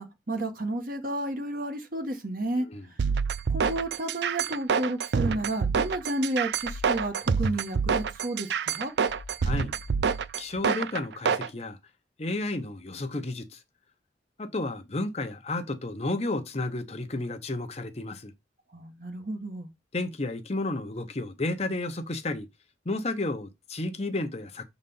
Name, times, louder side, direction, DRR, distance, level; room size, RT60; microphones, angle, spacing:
voice 1, 0.0-2.7 3.5-8.9 18.7-19.7, right 1 dB, 50° right, 1.4 m, -32 dB
sound 1, 3.0-11.5, right 6 dB, 65° right, 0.4 m, -27 dB
sound 2, 6.5-7.1 9.0-10.1 10.5-10.6, left 3 dB, 80° left, 0.7 m, -43 dB
voice 2, 9.4-9.7 10.4-11.8 12.2-13.6 14.4-18.3 19.9-22.5 22.8-24.7, left 2 dB, 35° left, 0.8 m, -32 dB
6.5 x 4.0 x 5.5 m
head